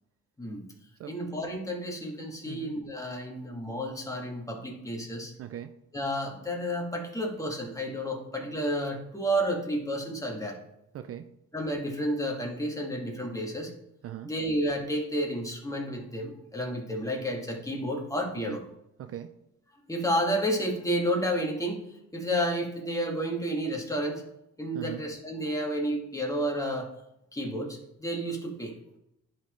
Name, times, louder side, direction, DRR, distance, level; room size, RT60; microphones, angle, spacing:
voice 1, 1.1-5.3 5.9-10.6 11.5-13.7 14.2-18.6 19.9-21.8 22.1-24.2 24.6-26.9 27.3-28.7, equal, 10° left, 0 dB, 1.8 m, -31 dB
voice 2, 5.4-5.8 10.9-11.3 14.0-14.3 18.5-18.6 19.0-19.4 24.7-25.0, right 10 dB, 50° right, 9 dB, 0.5 m, -40 dB
11.0 x 4.3 x 3.1 m, 0.82 s
cardioid pair, 90°, 30 cm